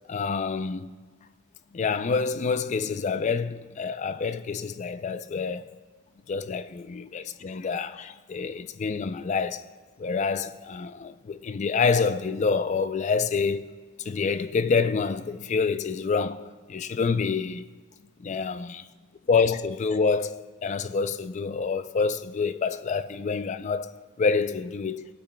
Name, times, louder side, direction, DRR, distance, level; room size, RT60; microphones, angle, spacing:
voice 1, 0.1-0.9 1.7-5.6 6.3-9.7 10.0-13.7 14.0-17.6 18.2-18.9 19.3-25.1, left 5 dB, 35° left, 0.3 m, -27 dB
19.5 x 8.6 x 2.2 m
head